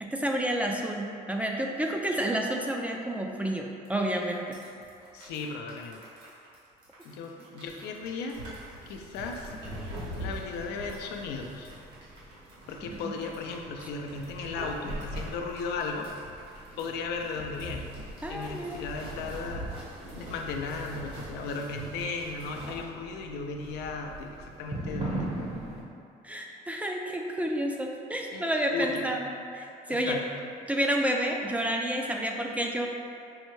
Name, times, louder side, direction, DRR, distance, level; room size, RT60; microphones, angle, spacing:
voice 1, 0.0-4.6 12.9-13.1 18.2-18.8 26.2-29.3 29.5-30.2 30.7-32.9, right 1 dB, 10° right, 1 dB, 0.3 m, -30 dB
sound 1, 3.8-3.9 4.2-22.8, right 1 dB, 85° right, 1.3 m, -43 dB
voice 2, 5.1-6.0 7.0-8.4 8.9-9.5 10.2-11.7 12.7-16.1 16.8-17.9 18.3-25.3 28.3-29.1 29.9-30.5, left 4 dB, 85° left, 2 dB, 0.4 m, -36 dB
sound 2, 9.3-25.8, right 2 dB, 40° right, 0.8 m, -43 dB
5.4 x 2.1 x 3.1 m, 2.7 s
cardioid pair, 110°, 17 cm